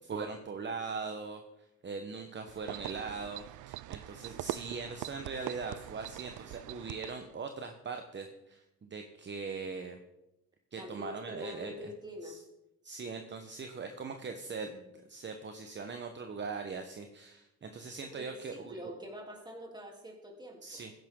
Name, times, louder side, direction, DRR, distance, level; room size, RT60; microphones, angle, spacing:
voice 1, 0.0-1.4 1.8-10.0 10.7-11.9 12.2-12.3 12.8-18.8 20.6-20.9, right 4 dB, 40° right, 6 dB, 1.1 m, -41 dB
sound 1, 2.5-7.3, right 15 dB, 80° right, 0.4 m, -43 dB
voice 2, 10.8-12.4 18.0-20.8, left 1 dB, 15° right, 0 dB, 3.2 m, -45 dB
15.0 x 10.5 x 3.8 m, 0.92 s
cardioid pair, 90°, 30 cm